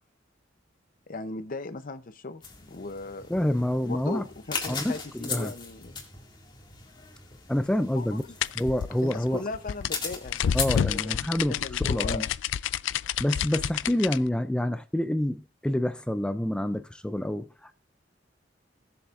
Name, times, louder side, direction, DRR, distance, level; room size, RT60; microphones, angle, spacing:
voice 1, 1.1-2.4 2.7-3.3 3.8-6.0 7.9-8.2 9.0-12.3, left 3 dB, 50° left, 0.7 m, -37 dB
sound 1, 2.4-10.8, left 4 dB, 25° left, 2.1 m, -38 dB
voice 2, 3.3-4.2 4.7-5.5 7.5-8.2 8.6-9.4 10.5-12.3 13.2-17.8, left 1 dB, 5° left, 0.3 m, -28 dB
sound 2, 8.4-14.2, left 9 dB, 80° left, 0.3 m, -29 dB
19.5 x 7.0 x 2.5 m
head